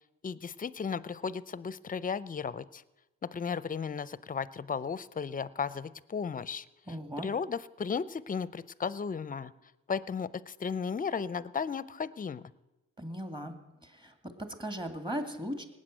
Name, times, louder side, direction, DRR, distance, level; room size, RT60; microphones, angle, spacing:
voice 1, 0.2-2.8 3.2-6.6 7.2-9.5 9.9-12.5, left 6 dB, 30° left, 18 dB, 0.6 m, -35 dB
voice 2, 6.9-7.3 13.0-13.5 13.8-15.6, equal, 15° right, 7 dB, 2.3 m, -38 dB
19.0 x 8.7 x 7.7 m, 0.99 s
cardioid pair, 90°, 30 cm